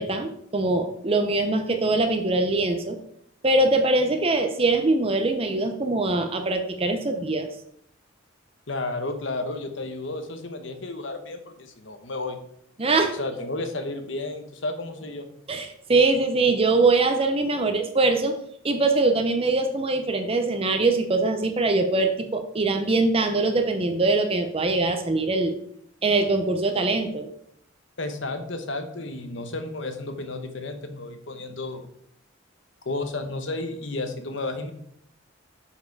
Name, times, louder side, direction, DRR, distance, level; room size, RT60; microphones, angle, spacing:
voice 1, 0.0-3.0 3.4-7.5 12.8-13.2 15.5-18.3 18.6-25.5 26.0-27.3, right 3 dB, 30° right, 6 dB, 0.7 m, -22 dB
voice 2, 8.7-12.4 13.1-15.3 28.0-31.8 32.8-34.7, left 2 dB, 65° left, 7 dB, 1.0 m, -32 dB
7.0 x 4.9 x 4.7 m, 0.69 s
head